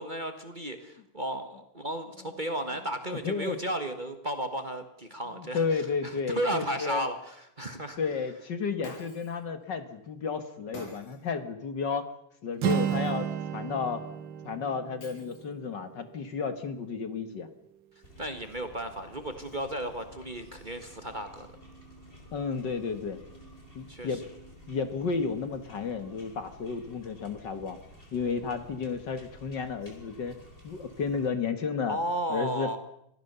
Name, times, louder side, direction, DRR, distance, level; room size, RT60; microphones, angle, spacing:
voice 1, 0.0-5.6 6.0-8.0 18.2-21.5 23.9-24.2 31.9-32.8, right 1 dB, 35° right, 7 dB, 0.8 m, -34 dB
voice 2, 3.1-3.6 5.3-7.0 8.0-12.1 12.4-13.3 13.5-14.0 14.4-17.5 22.3-23.2 23.7-24.2 24.7-27.8 28.1-30.4 30.6-32.0 32.3-32.8, left 5 dB, 45° left, 10 dB, 1.6 m, -32 dB
Shatter, 8.8-9.4 10.7-11.3 12.7-13.3 15.0-15.7, left 1 dB, 80° left, 6.9 m, -47 dB
Acoustic guitar, 12.6-16.5, right 9 dB, 60° right, 1.2 m, -33 dB
sound 1, 18.0-31.3, equal, 15° left, 4.3 m, -52 dB
25.5 x 17.5 x 6.8 m, 0.75 s
omnidirectional pair, 3.5 m